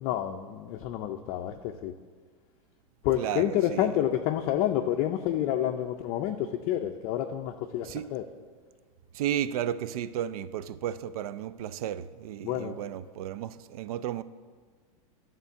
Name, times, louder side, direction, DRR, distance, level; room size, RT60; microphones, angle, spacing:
voice 1, 0.0-1.9 3.0-8.2 12.4-12.8, left 11 dB, 40° left, 0.4 m, -29 dB
voice 2, 3.2-3.9 7.8-8.1 9.1-14.2, right 10 dB, 80° right, 0.4 m, -33 dB
10.5 x 3.7 x 6.9 m
supercardioid pair, 150°, 18 cm